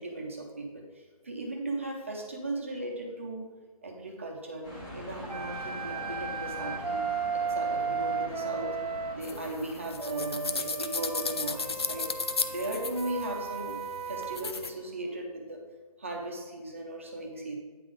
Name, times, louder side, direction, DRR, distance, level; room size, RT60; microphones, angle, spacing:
voice 1, 0.0-3.5 3.8-4.7 4.9-8.8 9.1-12.1 12.4-13.8 14.1-15.6 16.0-17.6, right 1 dB, 20° right, 0 dB, 0.6 m, -37 dB
sound 1, 4.6-10.3, equal, 10° left, 0.7 m, -43 dB
sound 2, 5.2-9.2 10.0-14.5, right 5 dB, 90° right, 0.7 m, -35 dB
sound 3, 9.2-14.7, left 4 dB, 45° left, 0.4 m, -35 dB
9.0 x 3.8 x 5.0 m, 1.4 s
hypercardioid pair, 175°, 19 cm